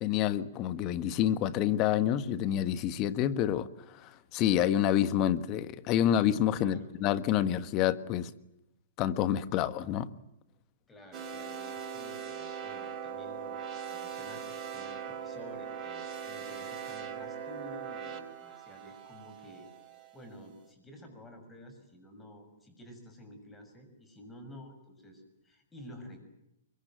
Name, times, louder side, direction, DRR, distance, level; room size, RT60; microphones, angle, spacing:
voice 1, 0.0-3.7 4.0-8.3 9.0-10.1, left 11 dB, 35° left, 1.3 m, -28 dB
voice 2, 6.6-7.0 10.9-19.7 20.1-26.2, equal, 10° left, 6.7 m, -51 dB
sound 1, 11.1-20.1, right 7 dB, 25° right, 3.6 m, -40 dB
24.0 x 23.0 x 9.0 m
hypercardioid pair, 135°, 0 cm